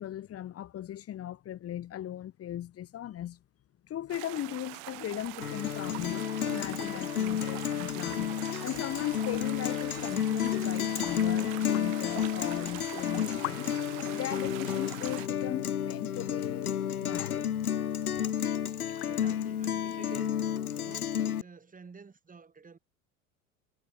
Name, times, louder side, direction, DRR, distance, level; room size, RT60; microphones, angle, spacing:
voice 1, 0.0-3.4 3.8-17.5, left 11 dB, 35° left, 1.5 m, -38 dB
sound 1, 4.1-15.3, right 39 dB, 55° right, 2.2 m, -43 dB
Guitar, 5.4-21.4, left 9 dB, 90° left, 1.3 m, -31 dB
sound 2, 11.2-19.6, left 32 dB, 55° left, 1.8 m, -49 dB
voice 2, 19.1-20.4 20.7-22.8, right 5 dB, 20° right, 6.7 m, -50 dB
hypercardioid pair, 85°, 43 cm